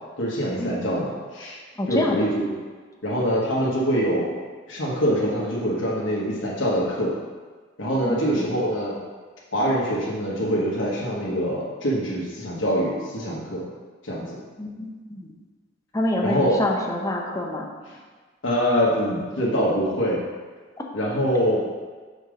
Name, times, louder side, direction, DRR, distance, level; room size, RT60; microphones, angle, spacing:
voice 1, 0.2-1.6 1.9-2.5 3.0-4.3 4.7-7.1 7.8-8.9 9.5-13.6 14.0-14.4 16.2-16.6 18.4-20.2 20.9-21.6, equal, 90° left, -5 dB, 1.2 m, -24 dB
voice 2, 1.8-2.2 8.0-8.6 14.6-15.3 15.9-17.7, left 1 dB, 20° left, 0 dB, 0.8 m, -27 dB
5.3 x 4.4 x 5.1 m, 1.4 s
head